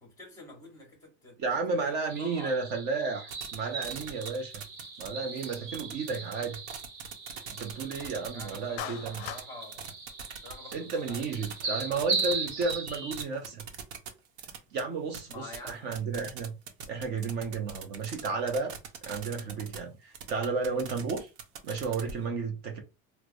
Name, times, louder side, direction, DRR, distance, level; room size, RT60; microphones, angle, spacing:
voice 1, 0.0-2.6 8.3-9.0 9.3-9.8 10.3-11.3 11.6-11.8 15.3-16.0, left 2 dB, 10° left, 1.0 m, -47 dB
voice 2, 1.4-4.5 5.0-6.6 7.6-9.2 10.7-13.6 14.7-16.5 16.9-18.8 19.0-21.3 21.6-22.8, right 4 dB, 35° right, 0.4 m, -32 dB
sound 1, 2.1-13.2, right 4 dB, 60° right, 0.9 m, -38 dB
sound 2, 3.3-3.5 3.8-5.1 5.3-14.8 15.1-19.8 20.1-22.1, right 7 dB, 85° right, 0.8 m, -41 dB
Clapping, 8.8-9.5, left 11 dB, 65° left, 0.5 m, -38 dB
4.6 x 2.0 x 2.5 m
cardioid pair, 175°, 33 cm